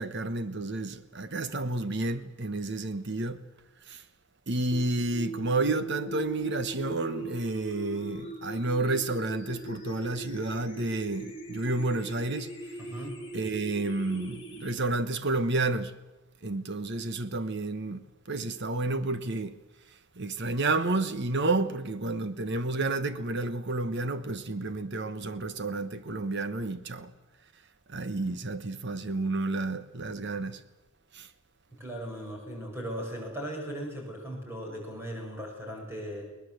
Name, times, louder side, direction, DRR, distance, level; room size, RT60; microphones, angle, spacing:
voice 1, 0.0-3.4 3.9-4.0 4.5-12.5 13.3-15.9 16.4-18.0 18.3-19.5 20.2-27.1 27.9-30.6 31.1-31.3, right 2 dB, 50° right, 1.1 m, -30 dB
sound 1, 4.7-14.7, right 1 dB, 25° left, 4.9 m, -40 dB
voice 2, 12.8-13.1 31.8-36.3, equal, 10° right, 6.3 m, -38 dB
22.0 x 19.0 x 8.0 m
head